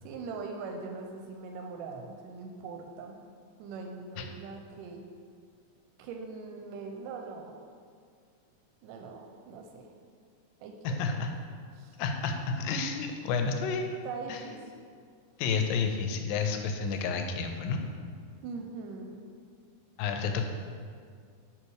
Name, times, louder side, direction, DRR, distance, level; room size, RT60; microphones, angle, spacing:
voice 1, 0.0-3.2 3.6-5.0 6.0-7.6 8.8-9.9 10.6-11.2 11.7-12.0 14.1-14.7 18.4-19.3, right 4 dB, 80° right, 3 dB, 2.0 m, -41 dB
voice 2, 10.8-11.3 12.0-13.9 14.3-14.4 15.4-17.8 20.0-20.4, left 5 dB, 85° left, 5 dB, 2.3 m, -30 dB
5.7 x 4.7 x 4.7 m, 2.1 s
omnidirectional pair, 3.9 m